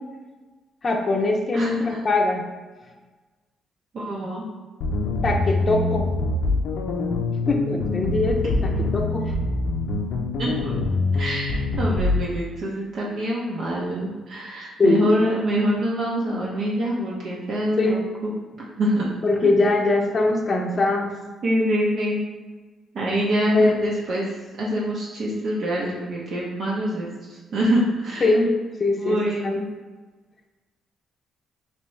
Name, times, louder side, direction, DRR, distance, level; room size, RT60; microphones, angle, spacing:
voice 1, 0.8-2.4 5.2-6.1 7.5-9.3 14.8-15.2 17.8-18.0 19.2-21.1 23.5-23.7 28.2-28.5 28.8-29.2 29.4-29.6, left 2 dB, 35° left, 2 dB, 0.5 m, -21 dB
voice 2, 1.5-2.0 3.9-4.4 10.4-10.8 11.1-18.3 18.8-19.1 21.4-22.2 22.9-28.3 29.0-29.7, equal, 60° right, -5 dB, 0.7 m, -25 dB
sound 1, 4.8-12.2, left 2 dB, 80° left, 0.5 m, -24 dB
3.3 x 2.9 x 3.1 m, 1.3 s
cardioid pair, 90°, 0 cm